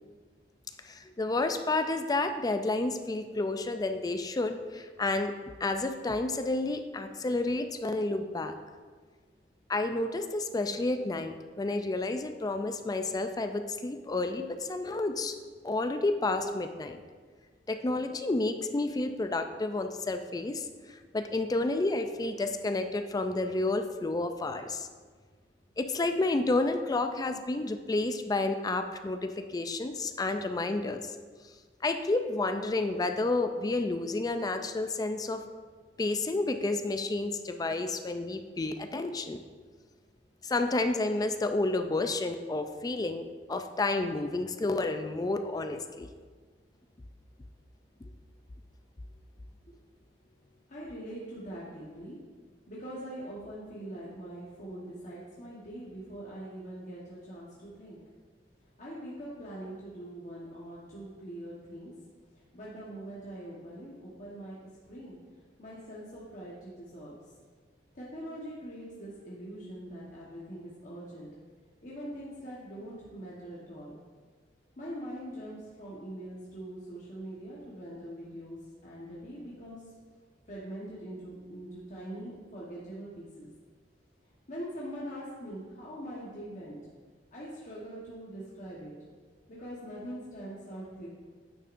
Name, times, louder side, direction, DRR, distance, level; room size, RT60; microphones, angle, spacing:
voice 1, 0.8-5.3 5.6-8.6 9.7-15.3 15.6-17.0 17.7-24.9 25.8-31.1 31.8-35.4 36.0-39.4 40.4-43.2 43.5-46.1, left 2 dB, 20° left, 7 dB, 0.3 m, -30 dB
voice 2, 50.7-52.2 52.7-58.0 58.8-61.9 62.5-64.6 64.9-65.2 65.6-67.2 67.9-71.3 71.8-73.9 74.8-79.8 80.5-83.5 84.5-86.8 87.3-88.9 89.5-91.1, right 1 dB, 45° left, -7 dB, 1.2 m, -43 dB
9.3 x 6.5 x 2.6 m, 1.5 s
head